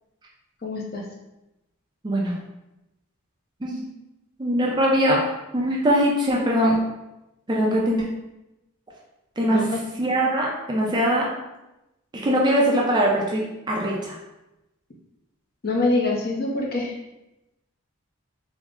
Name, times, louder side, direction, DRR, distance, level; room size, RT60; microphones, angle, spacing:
voice 1, 0.6-1.0 9.5-9.8 15.6-16.9, left 2 dB, 45° left, -1 dB, 0.5 m, -25 dB
voice 2, 4.4-5.2 5.5-6.8 7.5-8.0 9.4-9.7 10.0-11.3 12.1-14.2, equal, 20° right, -3 dB, 0.4 m, -21 dB
3.5 x 2.0 x 3.6 m, 0.95 s
head